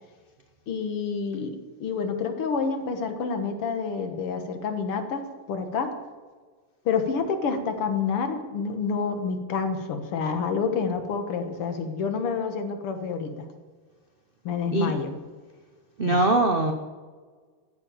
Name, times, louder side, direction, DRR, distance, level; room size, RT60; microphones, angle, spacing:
voice 1, 0.7-5.9 6.9-13.5 14.5-15.1 16.0-16.3, left 5 dB, 85° left, 7 dB, 2.4 m, -28 dB
voice 2, 16.0-16.7, right 2 dB, 85° right, 5 dB, 0.4 m, -21 dB
14.5 x 7.4 x 8.8 m, 1.5 s
omnidirectional pair, 2.4 m